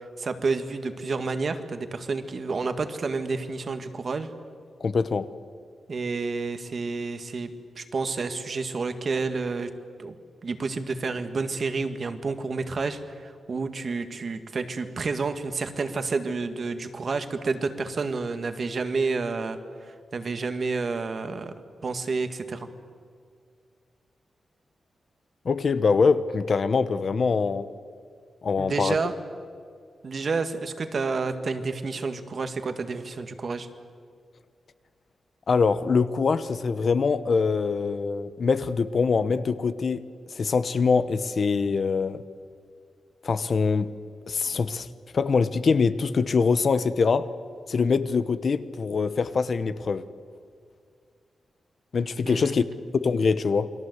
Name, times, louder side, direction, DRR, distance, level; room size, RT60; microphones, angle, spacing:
voice 1, 0.2-4.3 5.9-7.5 7.8-9.7 10.0-10.1 10.4-21.5 21.8-22.7 28.6-29.1 30.0-33.7 52.2-52.5, right 4 dB, 45° right, 8 dB, 1.8 m, -30 dB
voice 2, 4.8-5.3 25.4-27.7 28.4-28.9 35.5-42.2 43.2-43.9 44.3-44.9 45.1-47.3 47.7-50.0 51.9-52.6 52.9-53.7, left 5 dB, 50° left, 13 dB, 1.0 m, -24 dB
29.0 x 22.5 x 8.1 m, 2.1 s
wide cardioid pair, 145°, 0 cm